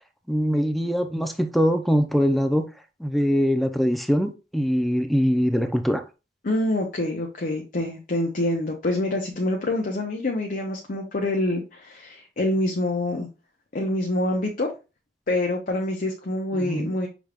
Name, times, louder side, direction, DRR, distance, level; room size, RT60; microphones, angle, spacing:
voice 1, 0.3-2.7 3.0-6.0 16.5-16.9, equal, ahead, 0.5 m, -22 dB
voice 2, 6.4-13.3 13.7-14.7 15.3-17.1, left 1 dB, 50° left, 0.8 m, -26 dB
6.0 x 3.4 x 2.4 m
head